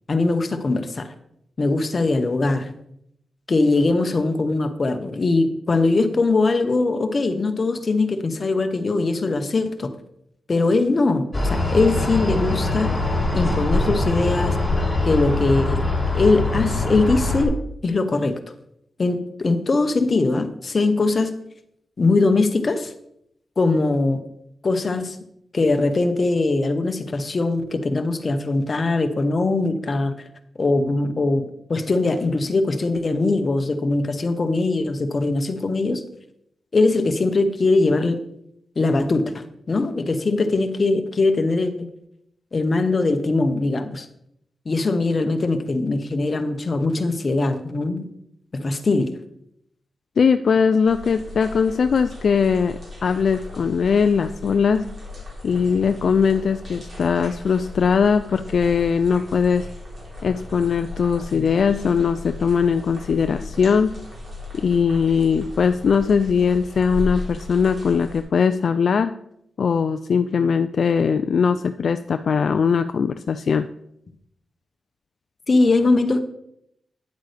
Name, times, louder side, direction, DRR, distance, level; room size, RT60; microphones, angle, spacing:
voice 1, 0.1-1.1 1.6-2.7 3.5-9.9 10.5-12.9 13.3-14.6 15.0-15.8 16.1-17.6 17.8-18.4 19.0-21.4 22.0-22.9 23.6-24.2 24.6-25.2 25.5-30.2 30.6-36.0 36.7-38.2 38.8-41.9 42.5-44.1 44.6-48.1 48.5-49.1 75.5-76.2, left 3 dB, 45° left, 8 dB, 0.9 m, -21 dB
sound 1, 11.3-17.4, left 2 dB, 20° left, 2.6 m, -23 dB
voice 2, 50.2-54.9 55.4-59.7 60.2-63.9 64.5-69.1 69.6-73.7, left 6 dB, 70° left, 9 dB, 0.3 m, -20 dB
sound 2, 50.9-68.2, left 2 dB, 50° right, 3.5 m, -37 dB
9.4 x 8.2 x 3.4 m, 0.76 s
cardioid pair, 85°, 0 cm